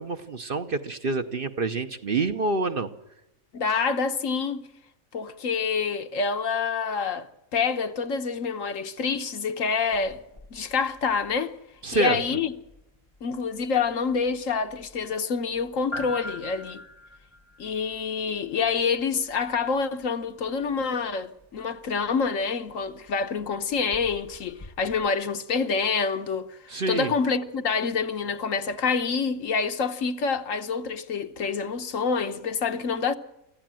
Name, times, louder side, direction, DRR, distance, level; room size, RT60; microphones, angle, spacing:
voice 1, 0.0-2.9 11.8-12.2 26.7-27.1, right 3 dB, 45° right, 1.0 m, -27 dB
voice 2, 3.5-4.6 5.1-10.2 10.5-11.5 11.9-12.5 13.2-16.8 17.6-26.6 26.9-33.1, left 5 dB, 65° left, 1.4 m, -27 dB
sound 1, 9.9-25.1, left 1 dB, 25° left, 1.0 m, -46 dB
24.0 x 15.0 x 7.6 m
omnidirectional pair, 1.5 m